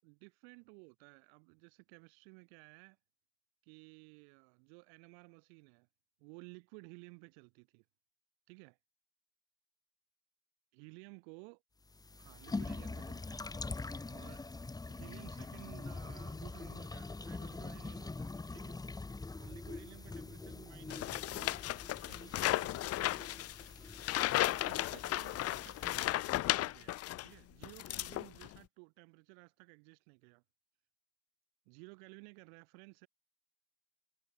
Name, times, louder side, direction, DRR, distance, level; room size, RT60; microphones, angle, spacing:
voice 1, 0.0-3.0 3.6-5.9 6.2-7.9 8.5-8.8 10.7-11.6 12.2-13.7 14.1-14.5 14.8-18.8 19.4-21.6 21.9-23.1 24.4-30.4 31.7-33.1, right 40 dB or more, 65° right, 1.9 m, -56 dB
sound 1, 11.9-26.2, left 3 dB, 10° left, 0.9 m, -44 dB
sound 2, 20.9-27.3 27.6-28.6, left 15 dB, 45° left, 0.8 m, -35 dB
figure-of-eight pair, 50°, 35 cm